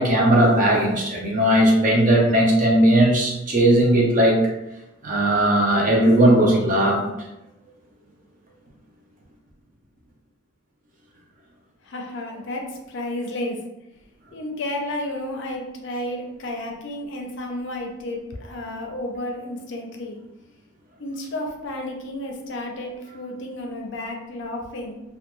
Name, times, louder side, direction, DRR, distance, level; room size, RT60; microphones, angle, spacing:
voice 1, 0.0-4.4 5.0-7.1, right 1 dB, 40° right, -1 dB, 0.5 m, -17 dB
voice 2, 11.8-13.6 14.3-20.2 21.0-25.0, left 1 dB, 55° left, 1 dB, 0.4 m, -32 dB
2.2 x 2.2 x 2.9 m, 0.92 s
head